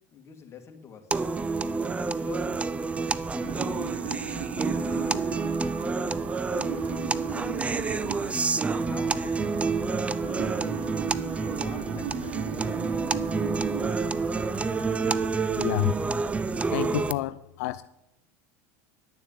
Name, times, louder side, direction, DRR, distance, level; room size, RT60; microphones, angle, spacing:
voice 1, 0.1-1.2 2.0-2.7 3.0-3.8 4.7-5.3 5.6-6.3 8.8-10.7 11.6-14.6, left 6 dB, 30° left, 4 dB, 2.1 m, -47 dB
sound 1, 1.1-17.1, right 4 dB, 15° right, 0.5 m, -28 dB
sound 2, 3.4-15.3, right 8 dB, 60° right, 1.5 m, -38 dB
sound 3, 3.9-16.0, right 6 dB, 85° right, 4.2 m, -54 dB
voice 2, 15.6-15.9 16.7-17.9, left 17 dB, 75° left, 13 dB, 0.4 m, -28 dB
11.0 x 7.1 x 7.5 m, 0.84 s
supercardioid pair, 110°, 9 cm